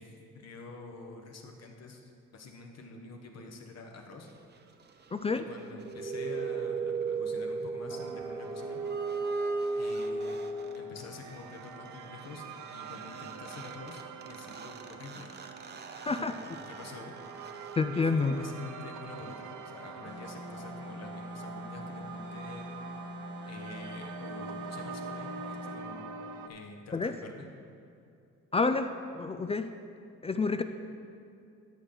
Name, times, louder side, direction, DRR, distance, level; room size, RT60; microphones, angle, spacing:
voice 1, 0.0-4.3 5.3-8.8 9.7-10.5 10.7-12.4 12.7-15.3 16.0-17.1 17.9-22.7 23.4-26.1 26.5-27.5 30.6-30.7, left 3 dB, 55° left, 3 dB, 1.2 m, -47 dB
voice 2, 5.1-5.5 16.0-16.4 17.7-18.4 26.9-27.1 28.5-29.8 30.2-30.6, left 4 dB, 20° left, 9 dB, 0.3 m, -29 dB
sound 1, 5.6-11.0 12.9-13.0 13.2-18.7, right 3 dB, 35° right, 0.7 m, -36 dB
sound 2, 7.9-26.5, right 5 dB, 75° right, 0.7 m, -45 dB
sound 3, 20.1-25.8, left 2 dB, 35° left, 1.0 m, -44 dB
12.5 x 6.5 x 3.9 m, 2.5 s
cardioid pair, 90°, 30 cm